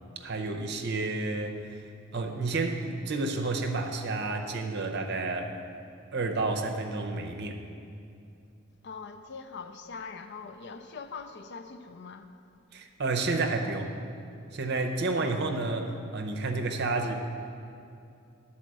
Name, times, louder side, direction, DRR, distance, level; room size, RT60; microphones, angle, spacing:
voice 1, 0.2-1.8 2.1-5.6 6.1-7.6 12.7-13.9 14.5-17.1, right 3 dB, 55° right, 0.7 m, -30 dB
voice 2, 8.8-12.3, left 5 dB, 55° left, 0.5 m, -42 dB
9.9 x 4.3 x 7.5 m
head